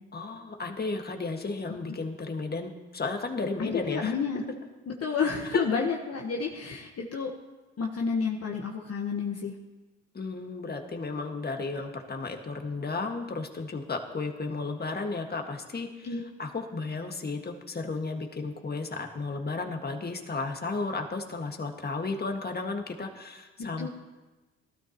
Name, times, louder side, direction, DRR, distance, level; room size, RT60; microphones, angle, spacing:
voice 1, 0.1-4.2 5.5-5.6 10.1-23.9, left 3 dB, 30° left, 4 dB, 1.9 m, -34 dB
voice 2, 3.6-4.4 4.9-7.3 7.8-9.5 16.0-16.2 23.8-23.9, left 5 dB, 45° left, 0 dB, 1.4 m, -30 dB
18.0 x 12.5 x 3.0 m, 1.2 s
hypercardioid pair, 60°, 33 cm